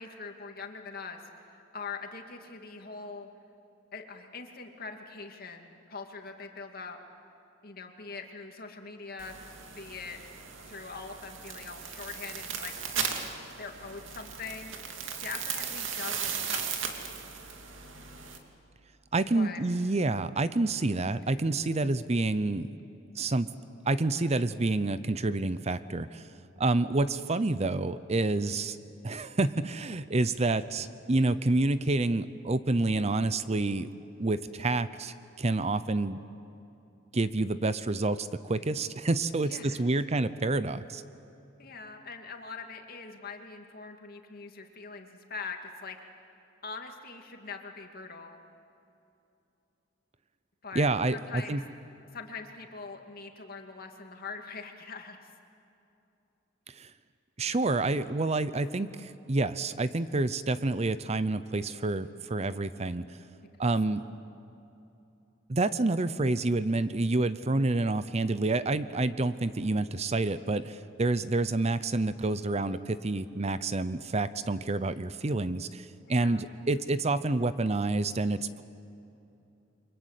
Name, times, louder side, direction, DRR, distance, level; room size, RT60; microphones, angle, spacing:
voice 1, 0.0-3.3 3.9-7.0 7.6-9.3 9.8-10.2 10.6-12.7 13.6-15.0 15.2-16.7 19.3-19.6 39.5-39.9 41.6-46.0 46.6-48.4 50.6-51.6 52.1-55.3 76.1-76.5, left 4 dB, 50° left, 4 dB, 2.4 m, -42 dB
sound 1, 9.2-18.4, right 7 dB, 85° right, 2.6 m, -37 dB
voice 2, 19.1-22.7 23.2-23.5 23.9-26.3 26.6-28.8 29.0-33.9 34.2-36.2 37.1-41.0 50.7-51.6 56.7-56.9 57.4-63.1 63.6-64.0 65.5-78.6, right 2 dB, 35° right, 14 dB, 0.7 m, -28 dB
29.5 x 24.5 x 8.3 m, 2.8 s
head